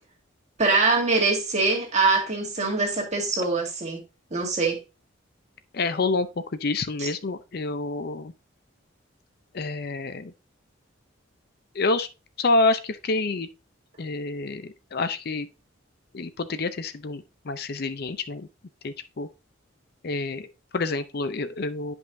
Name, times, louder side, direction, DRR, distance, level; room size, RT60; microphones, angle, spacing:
voice 1, 0.6-4.0 4.3-4.8 7.0-7.1, right 3 dB, 35° right, 2.0 m, -23 dB
voice 2, 5.7-8.3 9.5-10.3 11.7-12.1 12.4-13.5 14.0-15.5 16.1-18.5 18.8-19.3 20.0-21.9, left 3 dB, 50° left, 0.5 m, -28 dB
10.0 x 5.4 x 2.6 m
head